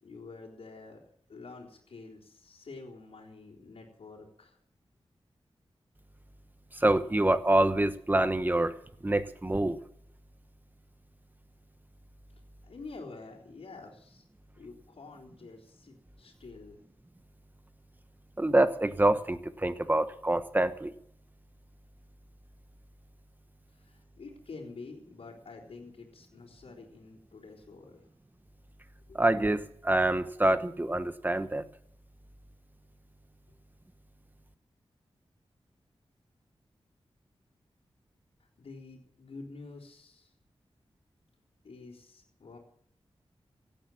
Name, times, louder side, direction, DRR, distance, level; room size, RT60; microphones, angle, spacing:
voice 1, 0.0-1.0 1.3-4.6 12.7-14.2 14.6-16.8 23.7-28.0 29.1-29.2 38.4-40.3 41.6-42.6, left 3 dB, 90° left, -5 dB, 3.8 m, -48 dB
voice 2, 6.8-8.7 9.0-9.8 18.4-20.9 29.1-31.6, right 1 dB, 20° right, 11 dB, 1.1 m, -26 dB
17.0 x 10.5 x 7.3 m, 0.68 s
wide cardioid pair, 100°, 10 cm